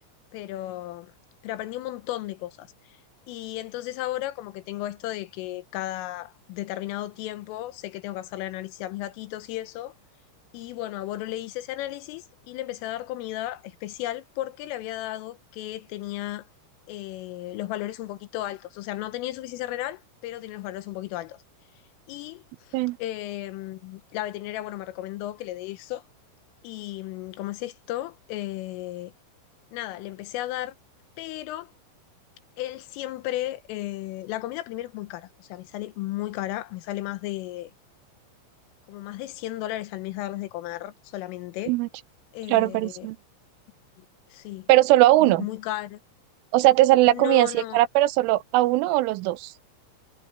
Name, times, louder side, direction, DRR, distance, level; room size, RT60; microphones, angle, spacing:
voice 1, 0.3-1.1 1.4-2.7 3.3-9.9 10.5-16.5 16.9-21.4 22.1-26.0 26.6-29.1 29.7-30.8 31.2-31.7 32.6-37.7 38.9-41.8 42.3-43.1 44.0-44.7 45.2-46.0 47.1-47.8, left 15 dB, 90° left, 3.7 m, -34 dB
voice 2, 42.5-43.2 44.7-45.5 46.5-49.5, right 16 dB, 85° right, 3.1 m, -20 dB
omnidirectional pair, 5.7 m